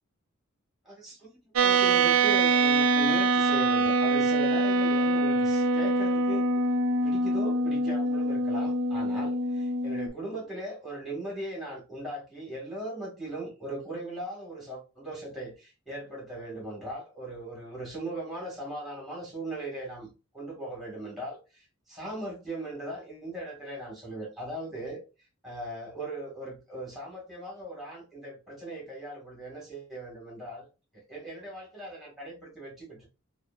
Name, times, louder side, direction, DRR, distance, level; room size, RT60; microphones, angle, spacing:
voice 1, 0.8-6.6 7.0-25.0 25.4-30.7 30.9-33.1, right 1 dB, ahead, 1.5 m, -39 dB
sound 1, 1.6-10.1, right 2 dB, 75° right, 0.4 m, -24 dB
3.1 x 2.4 x 2.3 m
head